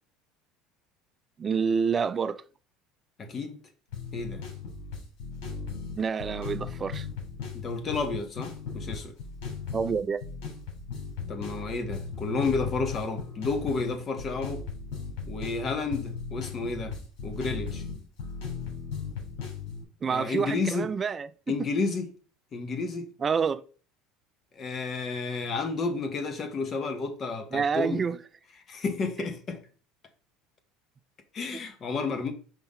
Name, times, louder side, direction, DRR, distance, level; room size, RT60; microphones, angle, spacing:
voice 1, 1.4-2.4 5.9-7.1 9.7-10.2 20.0-21.3 23.2-23.6 27.5-28.2, right 6 dB, 30° right, 0.5 m, -27 dB
voice 2, 3.2-3.6 4.1-4.4 7.5-9.1 11.3-14.6 15.3-17.0 17.2-17.8 20.1-20.9 21.5-22.1 22.5-23.1 24.5-28.0 28.7-29.6 31.3-32.3, left 4 dB, 35° left, 1.4 m, -31 dB
sound 1, 3.9-19.8, left 5 dB, 75° left, 3.3 m, -37 dB
5.7 x 3.5 x 5.5 m
supercardioid pair, 110°, 0 cm